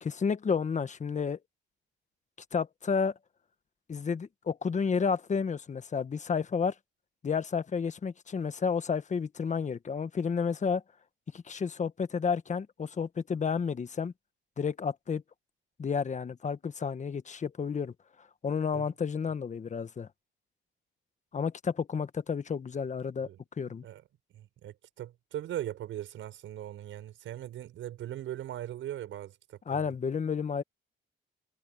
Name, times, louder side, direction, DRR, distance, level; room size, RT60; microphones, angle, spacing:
voice 1, 0.0-1.4 2.5-3.1 3.9-6.7 7.2-10.8 11.3-14.1 14.6-15.2 15.8-20.1 21.3-23.3 23.6-23.8 29.7-30.6, left 6 dB, 35° left, 1.4 m, -31 dB
voice 2, 24.3-29.8, right 12 dB, 80° right, 6.6 m, -40 dB
cardioid pair, 90°, 20 cm